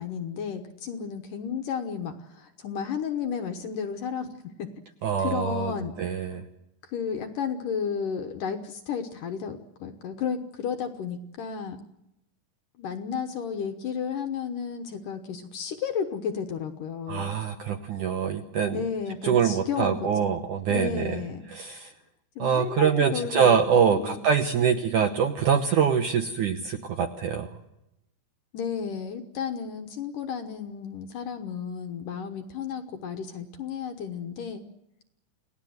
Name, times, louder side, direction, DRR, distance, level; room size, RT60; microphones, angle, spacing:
voice 1, 0.0-4.7 5.2-6.0 6.2-6.4 6.8-11.8 12.8-17.3 18.7-20.1 20.7-21.5 22.4-23.6 23.9-24.3 24.6-24.7 28.5-34.6, left 7 dB, 65° left, 6 dB, 2.2 m, -33 dB
voice 2, 5.0-5.7 6.0-6.4 17.1-18.8 19.2-21.2 21.5-21.9 22.4-27.5, right 7 dB, 70° right, 6 dB, 2.0 m, -24 dB
29.0 x 18.0 x 7.9 m, 0.89 s
omnidirectional pair, 4.9 m